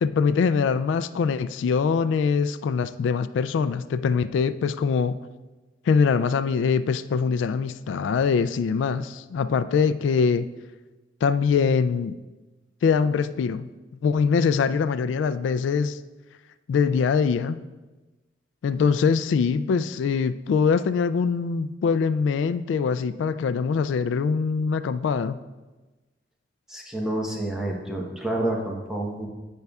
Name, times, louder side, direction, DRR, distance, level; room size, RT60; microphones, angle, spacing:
voice 1, 0.0-5.2 5.9-10.5 11.2-12.1 12.8-13.7 14.0-16.0 16.7-17.6 18.6-25.4, left 5 dB, 90° left, 13 dB, 0.3 m, -23 dB
voice 2, 26.7-29.3, right 1 dB, 5° right, -1 dB, 1.0 m, -29 dB
15.5 x 5.4 x 2.3 m, 1.2 s
head